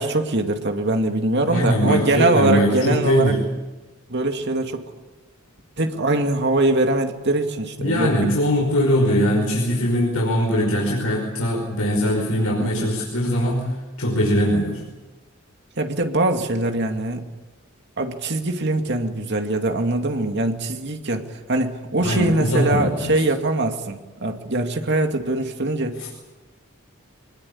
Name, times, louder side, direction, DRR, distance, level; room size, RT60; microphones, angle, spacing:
voice 1, 0.0-3.3 4.1-4.9 5.8-8.1 12.6-12.9 15.8-17.3 18.0-26.1, right 2 dB, 55° right, 4 dB, 2.4 m, -22 dB
voice 2, 1.4-3.4 7.8-14.8 22.0-23.2 26.0-26.1, equal, 85° left, -1 dB, 5.3 m, -21 dB
25.0 x 20.5 x 8.7 m, 1.2 s
head